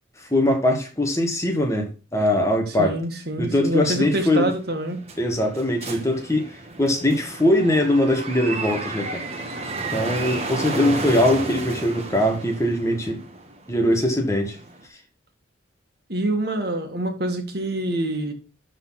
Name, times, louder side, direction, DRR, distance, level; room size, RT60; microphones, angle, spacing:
voice 1, 0.3-3.0 3.4-4.5 5.2-6.5 6.8-9.2 9.9-13.2 13.7-14.6, left 1 dB, 15° left, 1.5 m, -21 dB
voice 2, 2.7-5.0 16.1-18.3, right 1 dB, 55° right, 1.9 m, -26 dB
sound 1, 4.5-14.8, right 2 dB, 30° right, 1.5 m, -32 dB
12.0 x 4.1 x 5.8 m
head